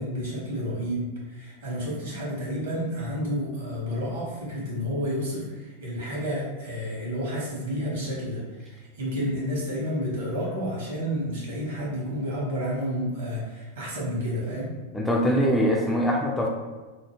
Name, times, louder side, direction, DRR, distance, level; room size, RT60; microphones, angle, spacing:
voice 1, 0.0-14.7, equal, 60° right, -5 dB, 1.2 m, -30 dB
voice 2, 14.9-16.5, equal, 5° left, -2 dB, 0.3 m, -23 dB
2.9 x 2.0 x 3.2 m, 1.3 s
figure-of-eight pair, 90°, 0 cm